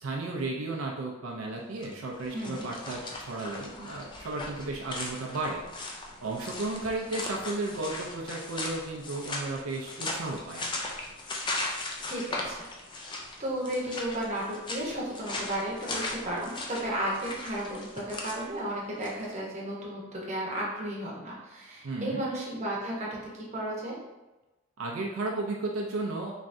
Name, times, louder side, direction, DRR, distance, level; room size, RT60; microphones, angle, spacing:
voice 1, 0.0-5.6 6.2-10.7 21.8-22.3 24.8-26.3, right 2 dB, 80° right, -1 dB, 0.5 m, -34 dB
sound 1, 1.7-19.3, left 2 dB, 20° left, 0.4 m, -38 dB
voice 2, 2.3-2.6 11.6-11.7 12.0-12.7 13.4-24.0, right 1 dB, 35° right, -5 dB, 0.9 m, -34 dB
3.5 x 3.1 x 2.6 m, 1.0 s
head